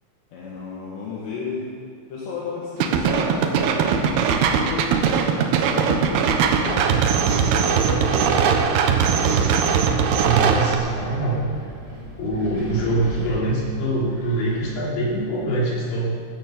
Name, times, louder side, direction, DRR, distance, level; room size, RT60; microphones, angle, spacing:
voice 1, 0.3-1.7 2.1-5.2 5.7-9.2, left 4 dB, 65° left, -6 dB, 4.0 m, -33 dB
sound 1, 2.8-10.7, right 6 dB, 70° right, 2.7 m, -20 dB
voice 2, 10.2-11.4 12.2-16.2, right 2 dB, 50° left, -5 dB, 4.9 m, -24 dB
Wind, 10.2-15.4, left 1 dB, 15° right, 4.2 m, -37 dB
16.0 x 11.5 x 7.1 m, 2.2 s
omnidirectional pair, 5.4 m